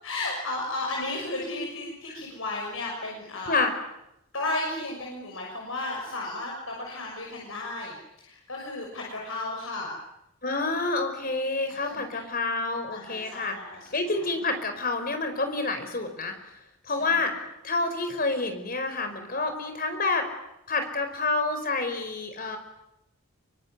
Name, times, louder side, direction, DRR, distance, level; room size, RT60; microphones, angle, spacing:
voice 1, 0.0-3.6 4.3-9.9 11.7-12.2 12.9-14.0 16.8-17.3, left 2 dB, 65° left, -1 dB, 6.6 m, -34 dB
voice 2, 10.4-13.6 13.9-16.3 16.9-17.4 17.6-20.3 20.7-22.6, left 3 dB, 40° left, 7 dB, 5.0 m, -28 dB
25.5 x 24.0 x 9.7 m, 0.84 s
head